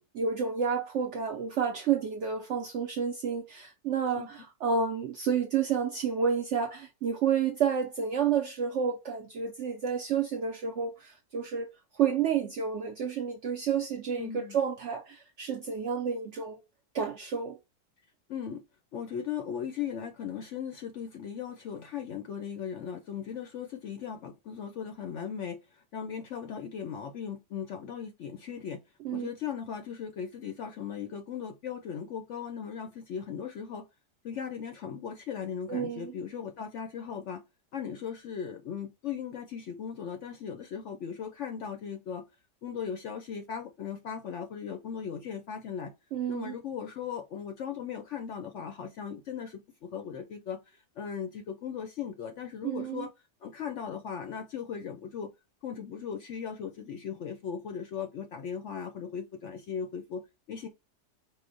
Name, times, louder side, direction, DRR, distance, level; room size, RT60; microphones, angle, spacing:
voice 1, 0.0-11.7 12.0-16.6 16.9-17.6 29.0-29.3 35.7-36.1 46.1-46.5 52.6-53.1, right 7 dB, 70° right, 0.7 m, -30 dB
voice 2, 14.2-14.6 18.3-18.6 18.9-28.8 29.1-33.9 34.2-37.4 37.7-42.2 42.6-45.9 46.3-53.1 53.4-55.3 55.6-60.2 60.5-60.7, left 7 dB, 65° left, 0.7 m, -38 dB
4.8 x 2.1 x 3.8 m
omnidirectional pair, 1.7 m